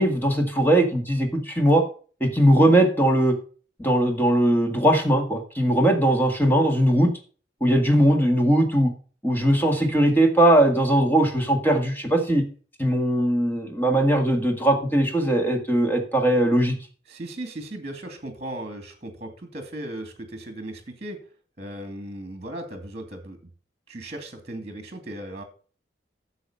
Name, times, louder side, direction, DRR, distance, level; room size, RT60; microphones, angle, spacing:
voice 1, 0.0-1.8 2.2-3.4 3.8-7.1 7.6-8.9 9.2-12.4 12.8-16.8, right 1 dB, 10° left, 3 dB, 1.9 m, -20 dB
voice 2, 17.1-21.2 21.6-23.4 23.9-25.4, right 1 dB, 35° right, 7 dB, 2.3 m, -37 dB
10.0 x 7.2 x 5.6 m, 0.41 s
head